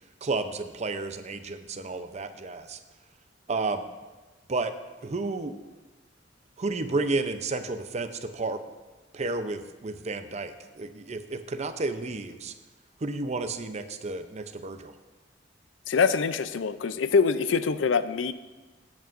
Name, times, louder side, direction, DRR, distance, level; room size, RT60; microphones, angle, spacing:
voice 1, 0.2-2.8 3.5-3.8 4.5-4.7 5.0-5.5 6.6-8.6 9.1-12.5 13.0-14.9, right 3 dB, 35° right, 9 dB, 0.6 m, -31 dB
voice 2, 15.9-18.3, left 5 dB, 80° left, 13 dB, 0.5 m, -24 dB
16.5 x 8.3 x 2.5 m, 1.2 s
head